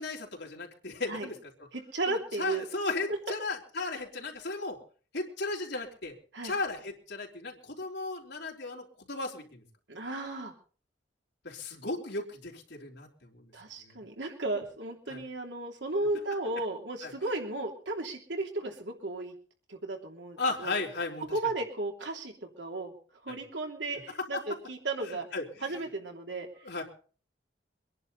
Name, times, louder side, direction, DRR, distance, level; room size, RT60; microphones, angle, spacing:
voice 1, 0.0-1.4 2.1-4.8 5.1-6.1 6.4-9.6 11.4-13.5 13.8-14.0 15.1-15.2 17.0-17.1 20.4-21.2 23.3-23.4 24.3-24.4 25.1-25.5 26.6-26.8, left 3 dB, 70° left, 0 dB, 3.6 m, -35 dB
voice 2, 1.7-2.7 3.1-3.3 6.3-6.5 9.9-10.5 13.5-19.3 19.7-20.7 21.3-22.9 23.2-25.3 25.6-26.5, right 2 dB, 80° right, 3 dB, 3.0 m, -34 dB
24.5 x 11.0 x 4.1 m, 0.41 s
head